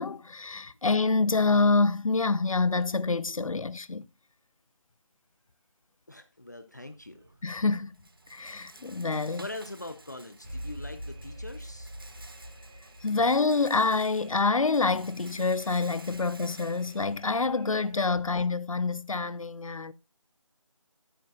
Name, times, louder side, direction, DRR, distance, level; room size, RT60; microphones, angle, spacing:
voice 1, 0.0-4.0 7.4-7.9 8.3-9.5 13.0-19.9, left 3 dB, 80° left, 0.7 m, -26 dB
voice 2, 6.1-7.3 9.4-11.9, left 2 dB, 35° left, 0.6 m, -42 dB
Rattle, 6.9-17.9, right 2 dB, 40° right, 1.1 m, -53 dB
Alarm, 10.4-18.1, equal, 15° right, 1.3 m, -46 dB
13.5 x 9.0 x 2.4 m
figure-of-eight pair, 175°, 17 cm